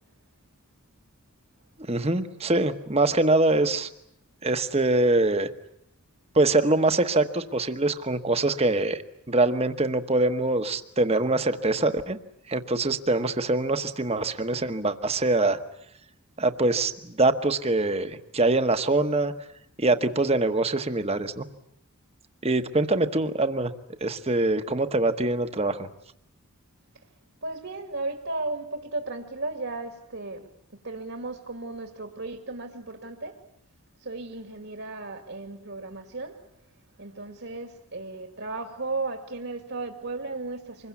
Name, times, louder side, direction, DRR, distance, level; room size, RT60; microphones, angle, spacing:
voice 1, 1.9-3.9 4.4-5.5 6.3-9.0 9.3-12.2 12.5-15.6 16.4-19.3 19.8-21.5 22.4-23.7 24.0-25.9, right 2 dB, 25° right, 1.1 m, -24 dB
voice 2, 27.4-30.5 30.8-33.4 34.0-36.4 37.0-40.9, right 2 dB, 65° right, 2.2 m, -35 dB
25.5 x 22.0 x 8.4 m
head